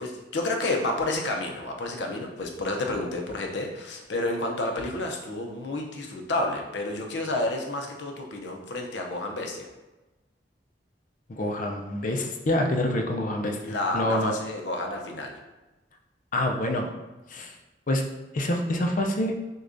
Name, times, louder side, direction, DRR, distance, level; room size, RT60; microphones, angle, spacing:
voice 1, 0.0-9.7 13.6-15.3, left 2 dB, 85° left, 2 dB, 0.7 m, -30 dB
voice 2, 11.3-14.4 16.3-16.9 17.3-17.6 17.9-18.0 18.3-19.3, left 1 dB, 45° left, 3 dB, 0.5 m, -27 dB
6.3 x 2.3 x 2.6 m, 1.1 s
head